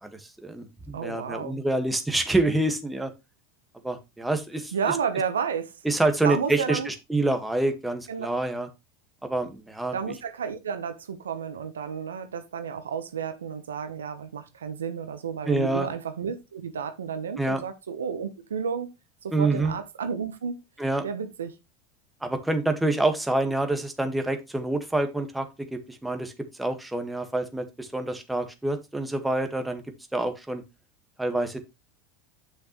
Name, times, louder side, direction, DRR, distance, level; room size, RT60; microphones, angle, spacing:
voice 1, 0.0-3.1 3.8-5.0 5.8-8.7 9.2-10.1 15.5-15.9 17.4-17.6 19.3-19.7 20.8-21.1 22.2-25.5 25.7-26.3 26.6-29.8 30.1-30.6 31.2-31.6, right 2 dB, 5° right, 1.7 m, -27 dB
voice 2, 0.9-1.6 4.7-5.7 6.2-6.9 8.1-8.3 9.9-18.9 19.2-20.5 21.0-21.6, right 7 dB, 80° right, 1.1 m, -31 dB
8.6 x 6.4 x 3.2 m
hypercardioid pair, 85°, 0 cm